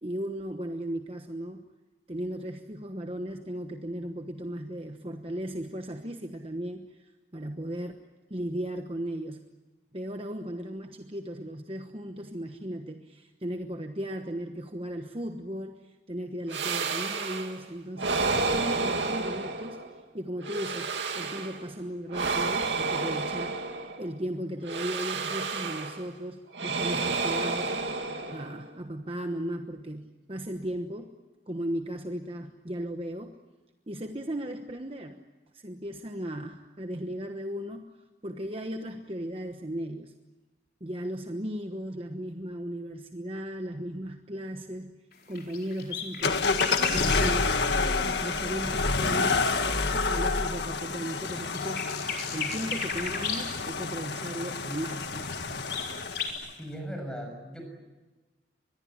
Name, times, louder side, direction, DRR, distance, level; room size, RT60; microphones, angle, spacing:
voice 1, 0.0-1.7 2.1-9.4 9.9-20.9 21.1-23.7 24.0-27.7 28.3-31.1 31.5-33.4 33.9-35.2 35.5-37.9 38.2-40.1 40.8-45.0 45.3-46.5 46.9-49.5 49.9-51.9 52.3-55.3, equal, 30° right, 5 dB, 1.2 m, -36 dB
sound 1, 16.5-17.6 18.0-20.0 20.4-21.6 22.1-24.1 24.7-26.1 26.5-28.7, right 3 dB, 90° right, 2.5 m, -30 dB
sound 2, 45.1-50.2 50.7-56.3, left 6 dB, 55° left, 4.6 m, -36 dB
sound 3, 46.2-56.5, left 4 dB, 75° left, 1.7 m, -29 dB
voice 2, 56.6-57.6, equal, 5° left, 3 dB, 6.6 m, -38 dB
25.0 x 21.5 x 9.9 m, 1.2 s
head